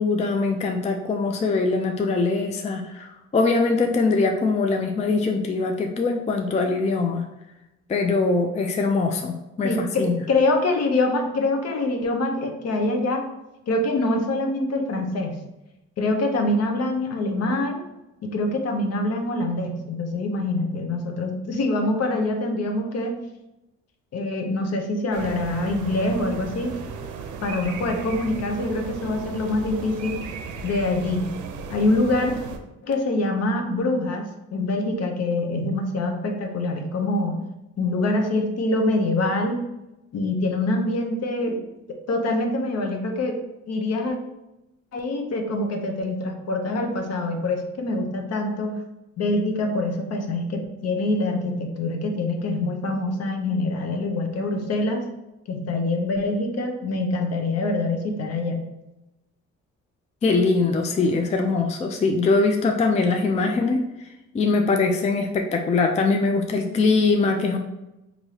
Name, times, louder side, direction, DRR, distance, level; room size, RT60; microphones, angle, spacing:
voice 1, 0.0-7.3 7.9-10.1 60.2-63.8 64.3-67.6, left 3 dB, 25° left, 4 dB, 0.4 m, -22 dB
voice 2, 9.6-13.3 13.7-15.4 16.0-17.8 18.2-23.1 24.1-26.7 27.4-30.2 30.6-31.4 31.7-32.4 32.8-37.4 37.8-39.6 40.1-41.6 42.1-43.4 43.7-44.2 44.9-48.8 49.2-55.0 55.5-58.6, left 2 dB, 55° left, 4 dB, 0.7 m, -25 dB
sound 1, 25.1-32.6, right 5 dB, 75° right, 0.5 m, -36 dB
4.7 x 2.7 x 2.8 m, 0.93 s
cardioid pair, 90°, 30 cm